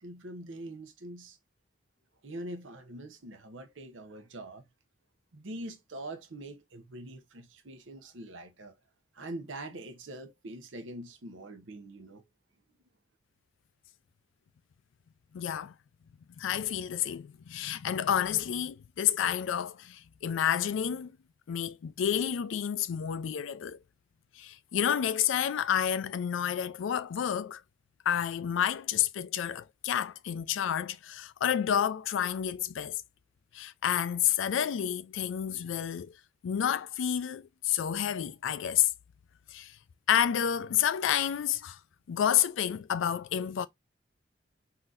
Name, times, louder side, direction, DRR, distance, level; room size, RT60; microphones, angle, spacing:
voice 1, 0.0-1.4 2.2-4.6 5.3-8.7 9.2-12.2, right 1 dB, 90° right, 0.8 m, -43 dB
voice 2, 15.3-15.7 16.4-21.1 21.5-23.8 24.4-27.6 28.1-33.0 33.5-36.1 36.4-38.9 39.5-39.8 40.1-41.8 42.1-43.7, left 9 dB, 90° left, 0.4 m, -29 dB
3.8 x 2.7 x 2.4 m
head